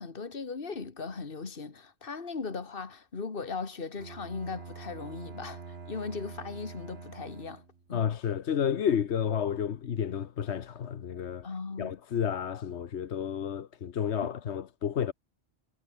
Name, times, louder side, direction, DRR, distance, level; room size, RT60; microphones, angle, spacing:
voice 1, 0.0-7.6 7.9-8.1 11.4-12.0, left 4 dB, 55° left, 2.1 m, -38 dB
Bowed string instrument, 4.0-7.9, right 5 dB, 70° right, 1.9 m, -45 dB
voice 2, 7.9-11.5 11.8-15.1, left 8 dB, 85° left, 1.3 m, -31 dB
omnidirectional pair, 1.1 m